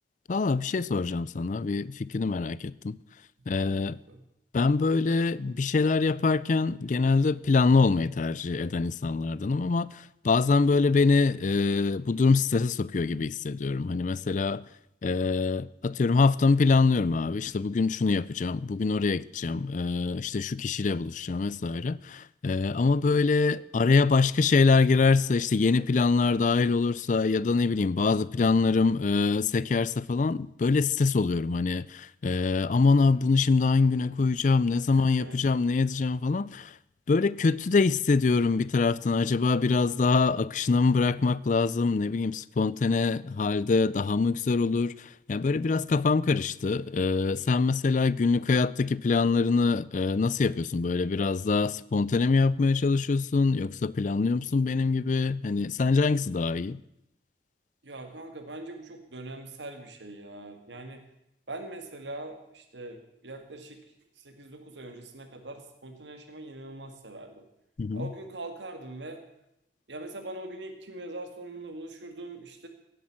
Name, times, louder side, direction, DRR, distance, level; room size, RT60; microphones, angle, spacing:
voice 1, 0.3-3.0 3.5-4.0 4.5-14.6 15.0-36.7 37.1-44.9 45.3-56.8 67.8-68.1, left 4 dB, 45° left, 0.4 m, -24 dB
voice 2, 3.6-4.2 34.9-35.4 57.8-61.0 61.5-63.8 64.2-67.5 67.9-69.2 69.9-72.7, right 2 dB, 85° right, 1.8 m, -42 dB
16.5 x 8.0 x 7.4 m
head